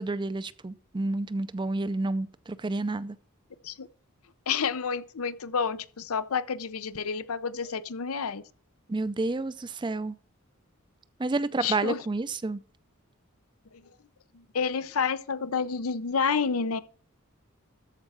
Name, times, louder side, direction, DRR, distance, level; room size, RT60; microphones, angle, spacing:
voice 1, 0.0-3.2 8.9-10.2 11.2-12.6, right 2 dB, 20° right, 0.4 m, -30 dB
voice 2, 4.5-8.4 11.6-12.0 14.5-16.8, left 6 dB, 90° left, 0.7 m, -29 dB
13.5 x 4.8 x 5.6 m
head